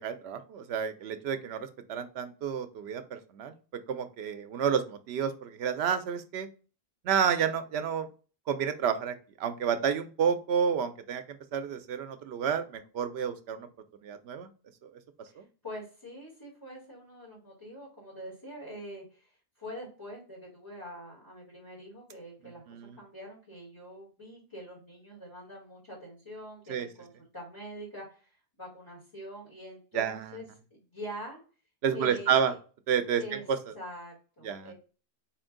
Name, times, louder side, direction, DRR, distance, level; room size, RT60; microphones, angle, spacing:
voice 1, 0.0-3.6 3.9-6.5 7.0-8.1 8.5-13.7 14.0-14.5 14.8-14.9 15.4-15.5 22.7-22.9 26.7-26.9 29.9-30.4 31.8-32.5 32.9-33.2 33.5-33.6 34.4-34.7, right 7 dB, 80° right, 9 dB, 0.8 m, -30 dB
voice 2, 15.3-19.3 19.6-30.4 30.7-31.4 31.9-32.6 33.2-33.5 33.7-34.7, equal, 25° left, -4 dB, 1.6 m, -45 dB
4.3 x 2.6 x 3.6 m, 0.37 s
omnidirectional pair, 1.1 m